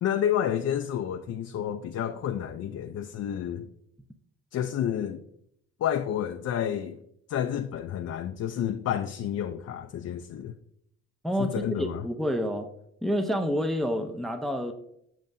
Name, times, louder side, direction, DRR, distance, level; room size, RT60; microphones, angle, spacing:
voice 1, 0.0-3.7 4.5-5.2 5.8-7.0 7.3-10.5 11.4-12.1, left 10 dB, 55° left, 6 dB, 0.5 m, -30 dB
voice 2, 11.8-12.7 13.0-14.7, equal, ahead, 6 dB, 0.6 m, -28 dB
7.4 x 6.8 x 2.6 m, 0.72 s
cardioid pair, 90°, 30 cm